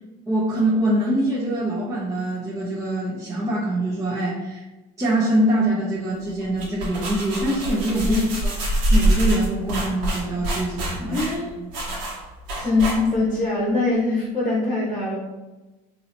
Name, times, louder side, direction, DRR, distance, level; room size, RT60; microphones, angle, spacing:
voice 1, 0.3-4.6 5.0-8.5 8.9-11.2 11.6-11.9, right 1 dB, 15° right, -8 dB, 0.9 m, -24 dB
sound 1, 6.4-13.4, right 1 dB, 75° right, 1.3 m, -25 dB
voice 2, 11.1-11.5 12.6-15.2, left 3 dB, 25° left, -5 dB, 1.1 m, -22 dB
3.8 x 2.9 x 2.8 m, 1.1 s
supercardioid pair, 105°, 20 cm